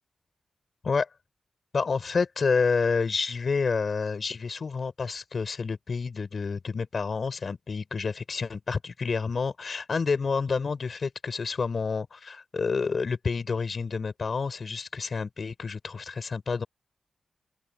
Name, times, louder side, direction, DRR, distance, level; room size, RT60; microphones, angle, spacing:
voice 1, 1.7-16.7, left 5 dB, 45° left, 7.6 m, -29 dB
open air
wide cardioid pair, 160°, 0 cm